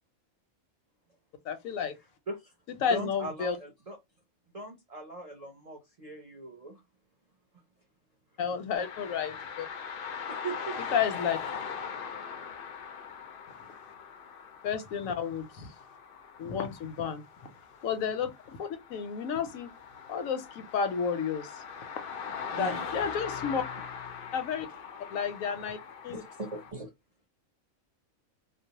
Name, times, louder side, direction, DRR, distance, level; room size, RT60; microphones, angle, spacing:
voice 1, 1.5-1.9 2.7-3.6 8.4-9.7 10.8-11.4 14.6-15.7 16.4-17.2 17.8-19.7 20.1-21.6 22.0-22.1 22.5-23.6 24.3-24.7 25.1-25.8 26.0-26.2, left 7 dB, 85° left, 1.0 m, -31 dB
voice 2, 2.9-4.0 4.5-6.8 10.1-10.8 22.5-22.8 25.6-25.7 26.1-26.9, right 3 dB, 45° right, 0.5 m, -40 dB
sound 1, 8.8-26.7, left 6 dB, 65° left, 0.5 m, -41 dB
2.5 x 2.0 x 2.8 m
omnidirectional pair, 1.4 m